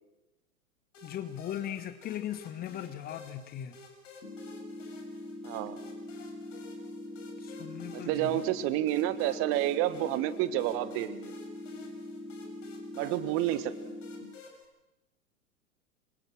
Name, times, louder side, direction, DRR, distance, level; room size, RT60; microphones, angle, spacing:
sound 1, 0.9-14.7, left 4 dB, 55° left, 6.7 m, -53 dB
voice 1, 1.0-3.8 7.4-8.3, left 11 dB, 20° left, 1.3 m, -38 dB
sound 2, 4.2-14.2, left 1 dB, 80° left, 7.6 m, -43 dB
voice 2, 5.4-5.8 7.9-11.3 12.9-13.9, right 13 dB, 30° right, 1.5 m, -30 dB
26.5 x 25.5 x 6.2 m
figure-of-eight pair, 105°, 45 cm